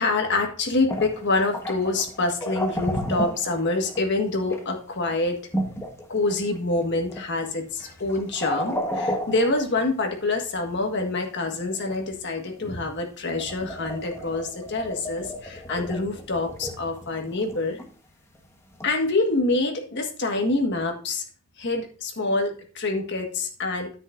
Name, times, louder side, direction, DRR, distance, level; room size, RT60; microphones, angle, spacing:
voice 1, 0.0-5.5 6.1-17.8 18.8-21.2 21.6-23.9, left 2 dB, 55° left, 3 dB, 1.6 m, -26 dB
sound 1, 0.9-4.0 4.5-4.6 5.5-6.8 7.1-7.5 7.8-10.2 11.5-12.0 12.9-13.0 13.3-17.9 18.7-18.9, equal, 15° left, 1.2 m, -32 dB
9.6 x 8.4 x 2.6 m, 0.40 s
head